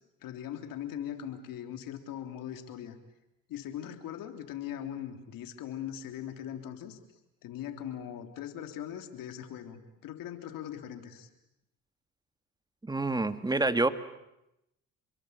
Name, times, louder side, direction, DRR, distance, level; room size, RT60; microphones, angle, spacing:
voice 1, 0.2-3.0 3.5-7.0 7.4-11.3, left 10 dB, 75° left, 6 dB, 3.4 m, -40 dB
voice 2, 12.8-13.9, right 2 dB, 10° right, 11 dB, 1.8 m, -27 dB
29.5 x 22.5 x 8.2 m, 0.86 s
supercardioid pair, 80°, 34 cm